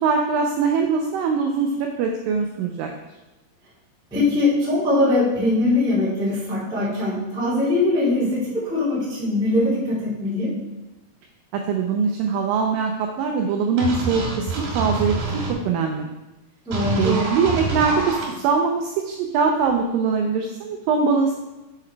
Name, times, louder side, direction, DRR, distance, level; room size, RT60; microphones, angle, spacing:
voice 1, 0.0-2.9 11.5-16.1 17.0-21.3, right 5 dB, 90° right, 3 dB, 2.0 m, -22 dB
voice 2, 4.1-10.5 16.6-17.2, left 2 dB, 5° right, -9 dB, 0.5 m, -21 dB
sound 1, 13.8-15.5 16.7-18.2, right 4 dB, 65° right, 3.1 m, -26 dB
7.3 x 3.8 x 4.5 m, 1.0 s
omnidirectional pair, 4.5 m